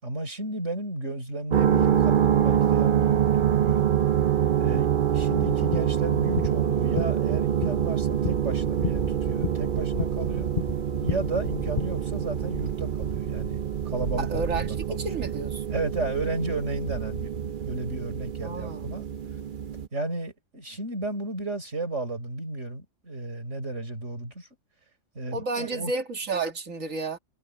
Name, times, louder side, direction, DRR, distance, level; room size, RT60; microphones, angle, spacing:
voice 1, 0.0-3.9 4.6-10.5 11.0-15.0 15.7-19.1 19.9-24.5 25.1-25.9, right 2 dB, 65° right, 6.0 m, -33 dB
sound 1, 1.5-19.9, right 9 dB, 50° right, 0.7 m, -26 dB
sound 2, 5.3-11.8, left 7 dB, 40° left, 0.8 m, -34 dB
voice 2, 14.2-15.6 18.4-18.9 25.3-27.2, right 3 dB, 85° right, 2.4 m, -31 dB
omnidirectional pair, 1.3 m